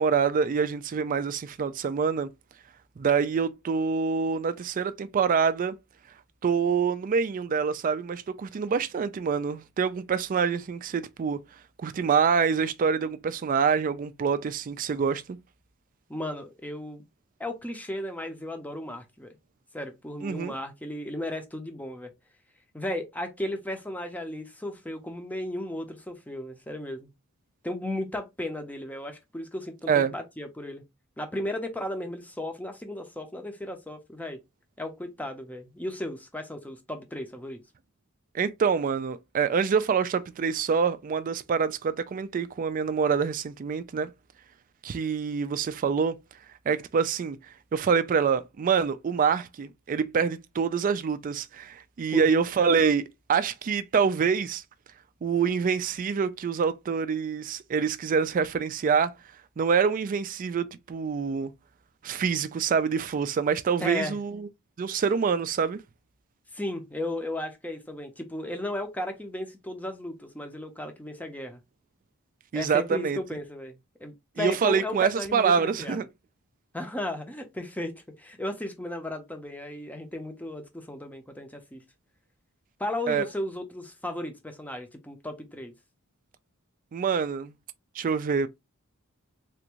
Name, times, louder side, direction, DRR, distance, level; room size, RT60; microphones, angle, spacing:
voice 1, 0.0-2.3 3.0-5.8 6.4-11.4 11.8-15.4 20.2-20.5 29.9-30.1 38.3-44.1 44.8-46.2 46.7-47.4 47.7-54.6 55.2-59.1 59.6-61.5 62.0-64.5 64.8-65.8 72.5-73.2 74.4-76.0 83.1-83.2 86.9-87.5 88.0-88.5, right 6 dB, 40° right, 0.3 m, -26 dB
voice 2, 16.1-17.0 17.4-19.3 19.7-22.1 22.7-27.1 27.6-30.9 31.2-34.4 34.8-37.6 52.1-52.3 63.8-64.2 66.5-71.6 72.5-76.1 76.7-81.8 82.8-85.7, left 1 dB, 5° left, 0.6 m, -35 dB
3.4 x 2.5 x 2.9 m
head